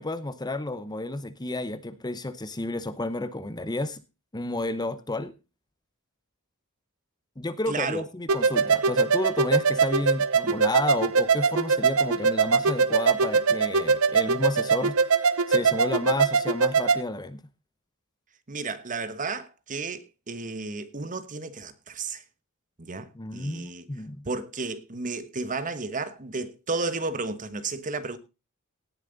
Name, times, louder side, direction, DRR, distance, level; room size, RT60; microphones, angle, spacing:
voice 1, 0.0-4.0 4.3-5.3 7.4-17.4 23.1-24.3, left 2 dB, 20° left, 0.9 m, -31 dB
voice 2, 7.7-8.0 18.5-22.2 22.8-23.8 24.2-28.2, right 3 dB, 35° right, 1.2 m, -33 dB
sound 1, 8.3-17.0, right 5 dB, 70° right, 0.8 m, -22 dB
17.5 x 7.3 x 4.0 m
head